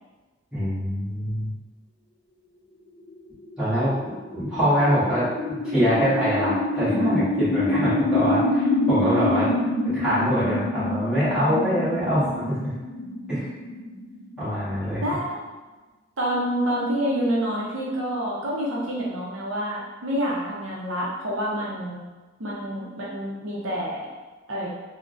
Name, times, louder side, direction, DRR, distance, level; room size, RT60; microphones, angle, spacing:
voice 1, 0.5-1.5 3.6-3.9 4.3-9.5 9.8-12.7 13.3-13.5 14.4-15.0, equal, 5° right, -13 dB, 1.2 m, -24 dB
sound 1, 3.0-15.1, left 2 dB, 50° left, 0.3 m, -27 dB
voice 2, 15.0-15.4 16.2-22.0 22.4-24.1 24.5-24.7, equal, 70° right, -5 dB, 0.6 m, -27 dB
3.4 x 2.1 x 2.5 m, 1.2 s
head